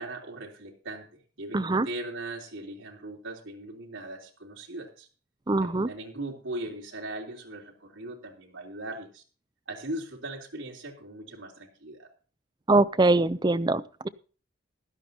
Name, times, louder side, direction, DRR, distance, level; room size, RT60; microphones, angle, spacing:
voice 1, 0.0-5.1 5.6-9.2 9.7-12.1, right 1 dB, 75° right, 1 dB, 3.3 m, -39 dB
voice 2, 1.5-1.9 5.5-5.9 12.7-14.1, right 2 dB, 20° right, 13 dB, 0.5 m, -23 dB
16.5 x 12.0 x 2.8 m, 0.38 s
head